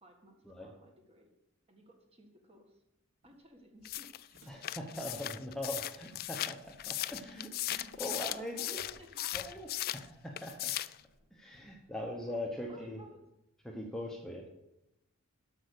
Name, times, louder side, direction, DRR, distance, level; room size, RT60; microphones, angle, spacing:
voice 1, 0.0-1.3 1.7-2.8 3.2-4.4 7.8-8.0 8.5-8.7 9.0-9.4 12.3-13.2, equal, 30° right, 2 dB, 1.7 m, -58 dB
Walk footsteps, 3.2-12.5, equal, 65° right, 2.2 m, -63 dB
sound 1, 3.8-10.1 10.4-11.0, left 14 dB, 45° left, 0.3 m, -38 dB
voice 2, 4.5-9.0 9.3-9.7 9.9-10.7 11.3-13.0 13.6-14.4, left 1 dB, ahead, 0 dB, 0.9 m, -41 dB
8.6 x 6.4 x 6.6 m, 0.85 s
head